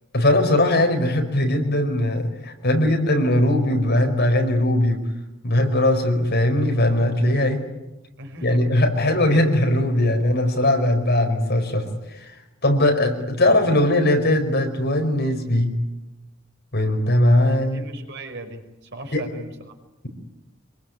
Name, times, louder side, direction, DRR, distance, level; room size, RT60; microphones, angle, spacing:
voice 1, 0.1-5.0 5.4-7.6 8.4-12.3 12.6-15.7 16.7-17.8 19.1-19.2, left 1 dB, 55° left, 4 dB, 5.0 m, -20 dB
voice 2, 8.2-8.8 17.5-19.7, right 1 dB, 60° right, 4 dB, 5.4 m, -38 dB
25.5 x 23.5 x 9.6 m, 0.98 s
head